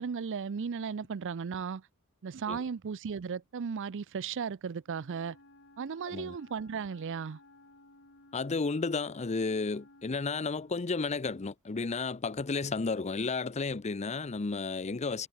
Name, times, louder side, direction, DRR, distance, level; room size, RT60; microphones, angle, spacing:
voice 1, 0.0-1.9 2.2-5.4 5.8-7.4, right 6 dB, 60° right, 0.5 m, -36 dB
Wind instrument woodwind instrument, 4.8-10.9, left 2 dB, 60° left, 7.7 m, -58 dB
voice 2, 8.3-15.3, left 4 dB, 30° left, 0.6 m, -32 dB
head